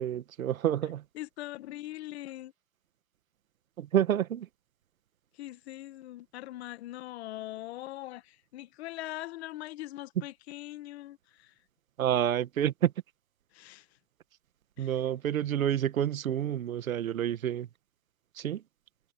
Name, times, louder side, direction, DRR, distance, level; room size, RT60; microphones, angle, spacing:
voice 1, 0.0-1.0 3.8-4.5 12.0-12.9 14.8-17.7 18.3-18.6, right 10 dB, 85° right, 1.7 m, -29 dB
voice 2, 1.1-2.5 5.3-11.6 13.5-13.9 14.8-15.0, left 15 dB, 50° left, 1.3 m, -42 dB
hypercardioid pair, 150°, 40 cm